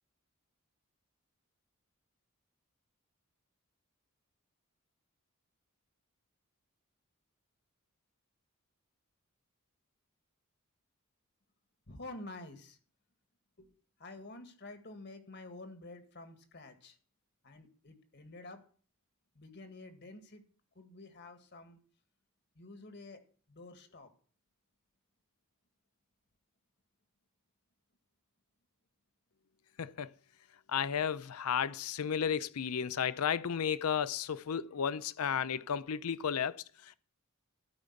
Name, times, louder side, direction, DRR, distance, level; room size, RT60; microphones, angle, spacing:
voice 1, 11.9-12.8 13.6-13.7 14.0-17.0 17.4-18.7 19.4-20.4 20.8-21.8 22.6-23.2 23.5-24.1, left 2 dB, 50° left, 1.9 m, -49 dB
voice 2, 29.8-30.1 30.7-37.0, left 7 dB, 90° left, 0.6 m, -33 dB
13.0 x 5.3 x 8.2 m
head